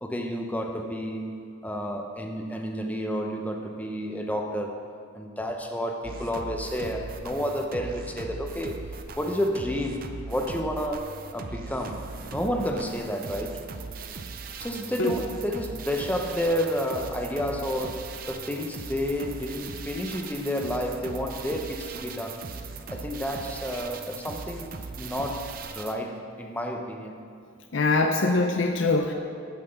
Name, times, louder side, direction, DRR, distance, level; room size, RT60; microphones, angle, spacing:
voice 1, 0.0-1.3 1.6-4.8 5.1-8.8 9.2-13.6 14.6-22.4 22.9-27.3, equal, 10° left, 3 dB, 0.6 m, -30 dB
sound 1, 6.0-25.9, right 4 dB, 45° right, 0.5 m, -39 dB
voice 2, 27.7-29.1, left 3 dB, 70° left, 3 dB, 0.5 m, -23 dB
8.8 x 5.8 x 6.8 m, 2.3 s
head